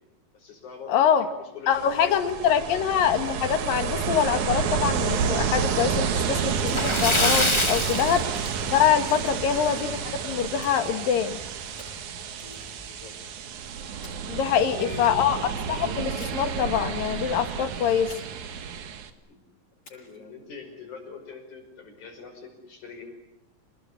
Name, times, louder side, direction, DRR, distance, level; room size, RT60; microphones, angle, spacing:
voice 1, 0.3-2.7 12.4-13.2 14.5-15.3 18.5-18.6 19.3-19.4 19.9-23.0, left 5 dB, 60° left, 4 dB, 6.9 m, -44 dB
voice 2, 0.9-1.3 1.7-8.3 8.7-10.0 10.2-11.4 14.3-15.4 15.7-18.1, left 8 dB, 90° left, 9 dB, 3.5 m, -24 dB
Ocean, 1.7-19.1, right 6 dB, 65° right, 3.0 m, -30 dB
Splash splatter, 6.6-9.0 9.3-9.5 9.9-10.0 11.5-11.6 11.9-12.0 12.6-12.9, left 1 dB, 10° left, 1.3 m, -25 dB
sound 1, 9.0-9.6 10.6-11.2 11.8-13.0 14.0-14.8 16.2-16.7 16.9-17.0 18.1-18.8 19.8-20.4, left 2 dB, 40° left, 9.0 m, -51 dB
28.0 x 21.0 x 10.0 m, 0.89 s
omnidirectional pair, 3.9 m